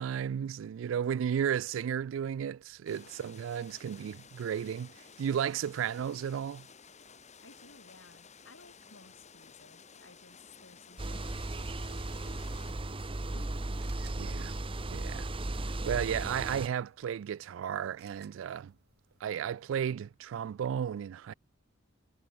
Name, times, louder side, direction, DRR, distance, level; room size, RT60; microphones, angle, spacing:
voice 1, 0.0-4.9 5.2-6.7 14.2-14.6 14.9-15.3 15.8-18.7 19.2-21.3, right 8 dB, 75° right, 0.3 m, -34 dB
sound 1, 2.9-12.7, left 6 dB, 35° left, 3.5 m, -55 dB
voice 2, 7.4-11.5 11.8-13.5, left 3 dB, 75° left, 7.9 m, -58 dB
sound 2, 11.0-16.7, right 2 dB, 25° right, 1.0 m, -36 dB
sound 3, 13.0-19.8, right 8 dB, 55° right, 8.0 m, -64 dB
head